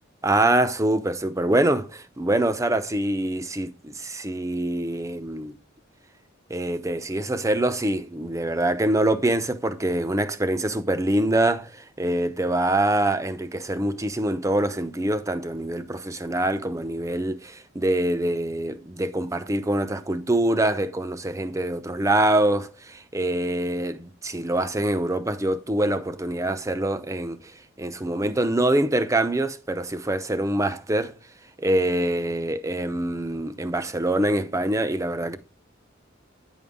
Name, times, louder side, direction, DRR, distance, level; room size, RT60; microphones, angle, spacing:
voice 1, 0.2-5.5 6.5-27.4 27.8-31.1 31.6-35.4, right 1 dB, 15° right, 0.7 m, -24 dB
9.5 x 5.4 x 3.6 m
head